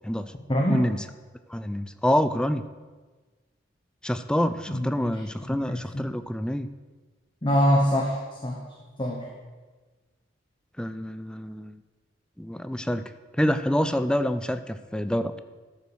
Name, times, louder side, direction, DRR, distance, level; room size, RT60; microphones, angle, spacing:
voice 1, 0.5-0.9 4.7-5.2 5.5-6.1 7.4-8.6 9.0-9.3, equal, 25° left, -1 dB, 1.1 m, -25 dB
voice 2, 1.5-2.6 4.0-6.7 10.8-11.8 12.4-13.0 13.4-15.4, equal, 5° left, 11 dB, 0.4 m, -27 dB
13.0 x 5.6 x 6.3 m, 1.3 s
head